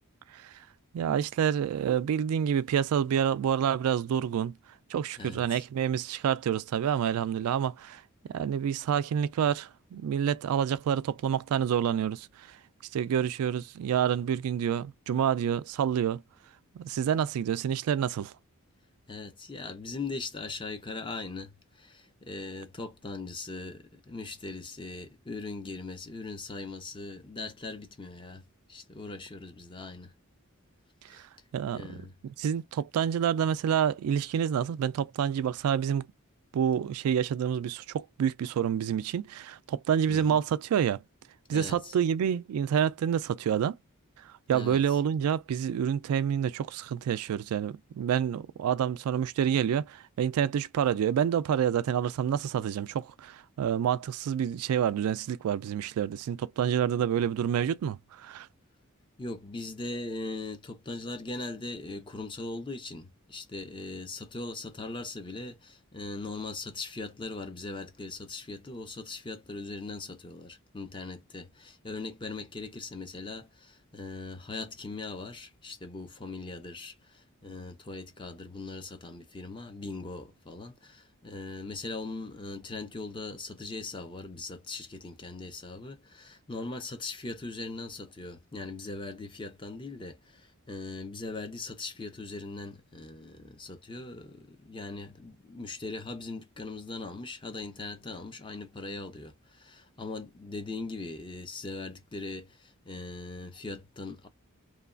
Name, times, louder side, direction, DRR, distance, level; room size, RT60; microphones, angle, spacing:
voice 1, 0.9-4.6 4.9-8.0 8.3-12.6 12.9-16.2 16.7-18.3 31.1-31.3 31.5-32.0 32.4-36.1 36.5-41.0 41.5-43.8 44.5-58.5, right 8 dB, 85° right, 0.3 m, -28 dB
voice 2, 5.2-5.6 19.1-28.4 28.7-30.1 31.1-31.2 31.7-32.1 40.1-40.4 41.5-41.9 44.5-45.0 59.2-104.3, left 3 dB, 20° left, 0.5 m, -40 dB
3.1 x 2.3 x 2.4 m
head